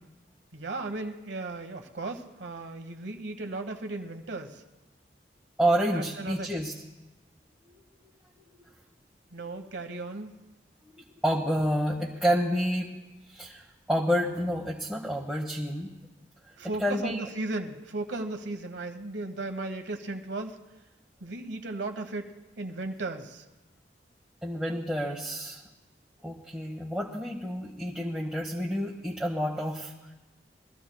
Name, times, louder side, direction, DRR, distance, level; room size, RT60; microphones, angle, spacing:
voice 1, 0.5-4.6 5.9-6.5 9.3-10.3 16.6-20.6 21.2-23.4, right 2 dB, 85° right, 5 dB, 1.3 m, -36 dB
voice 2, 5.6-6.7 11.2-12.9 13.3-15.9 16.8-17.2 24.4-25.6 26.2-29.9, equal, 5° right, -4 dB, 1.1 m, -29 dB
23.0 x 14.5 x 2.3 m, 1.1 s
head